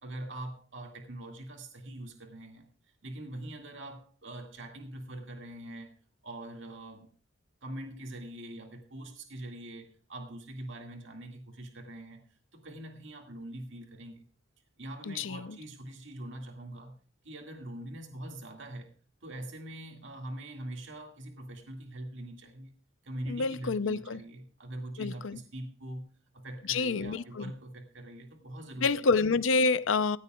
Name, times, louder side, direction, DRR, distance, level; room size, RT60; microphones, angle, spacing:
voice 1, 0.0-2.7 3.0-5.9 6.2-7.1 7.6-12.2 12.5-14.2 14.8-17.0 17.2-18.9 19.2-22.7 23.0-29.1, right 1 dB, 65° right, 2.0 m, -43 dB
voice 2, 15.1-15.6 23.3-24.2 25.0-25.4 26.7-27.5 28.8-30.2, left 4 dB, 70° left, 0.6 m, -28 dB
17.0 x 15.5 x 2.3 m
head